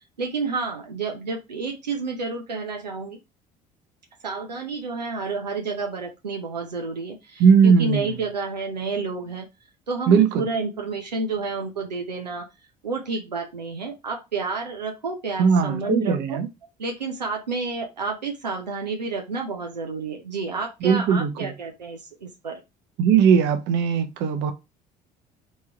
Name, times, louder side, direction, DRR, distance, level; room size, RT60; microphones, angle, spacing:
voice 1, 0.2-3.2 4.2-9.4 9.9-12.5 12.8-16.4 16.8-22.6, right 4 dB, 90° right, 0.6 m, -30 dB
voice 2, 7.4-8.2 10.1-10.4 15.4-16.5 20.8-21.5 23.0-24.5, right 6 dB, 55° right, 0.8 m, -19 dB
3.6 x 3.1 x 4.5 m
figure-of-eight pair, 60°, 21 cm